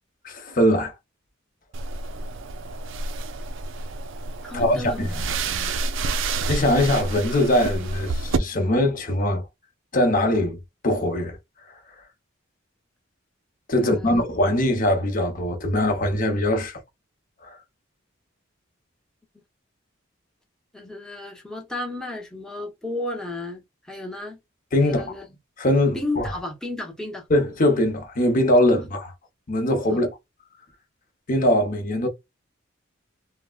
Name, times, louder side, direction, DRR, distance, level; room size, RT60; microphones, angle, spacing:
voice 1, 0.2-0.9 4.5-5.1 6.5-9.4 9.9-10.6 10.8-11.4 13.7-16.8 17.4-17.6 24.7-25.2 25.6-26.3 27.3-29.1 29.5-30.1 31.3-32.1, left 1 dB, 45° left, 0.9 m, -21 dB
sound 1, 1.7-8.4, right 3 dB, 65° right, 0.4 m, -29 dB
voice 2, 4.4-5.7 13.7-14.3 20.7-24.4 24.8-25.3 25.9-27.3 29.9-30.0, left 2 dB, 5° left, 0.8 m, -33 dB
3.5 x 2.1 x 2.3 m
head